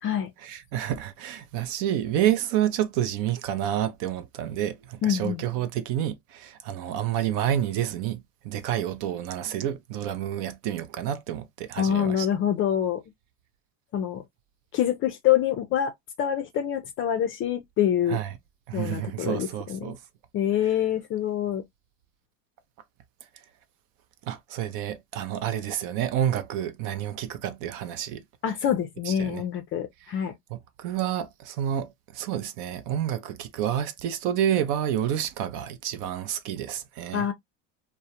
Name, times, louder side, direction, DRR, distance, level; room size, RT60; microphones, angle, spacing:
voice 1, 0.4-12.3 18.1-18.3 18.7-20.0 24.2-28.2 29.1-29.4 30.5-37.3, right 11 dB, 55° right, 0.5 m, -29 dB
voice 2, 5.0-5.4 11.8-13.0 13.9-14.2 14.7-15.9 16.2-18.2 18.7-19.9 20.3-21.6 28.4-30.3 37.1-37.3, left 10 dB, 35° left, 0.4 m, -26 dB
2.2 x 2.1 x 2.7 m
supercardioid pair, 120°, 39 cm